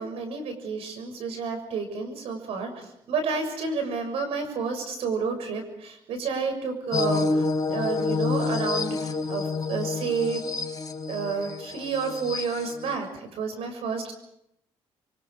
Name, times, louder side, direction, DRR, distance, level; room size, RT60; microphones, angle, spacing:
voice 1, 0.0-10.5 11.1-14.1, right 5 dB, 75° right, 6 dB, 6.6 m, -30 dB
sound 1, 6.9-12.9, left 4 dB, 35° left, 4.7 m, -28 dB
29.5 x 24.0 x 5.0 m, 0.78 s
cardioid pair, 90°, 10 cm